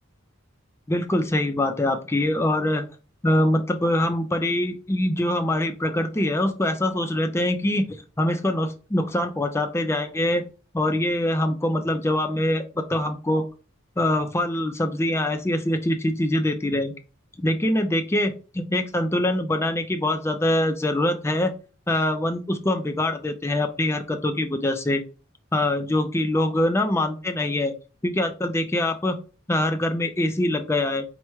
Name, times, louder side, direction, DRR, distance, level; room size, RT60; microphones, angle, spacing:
voice 1, 0.9-2.8 3.2-10.4 10.7-13.5 14.0-16.9 17.4-21.5 21.9-25.0 25.5-27.7 28.0-29.2 29.5-31.0, left 1 dB, 10° left, 6 dB, 0.4 m, -24 dB
4.5 x 2.1 x 4.5 m, 0.35 s
head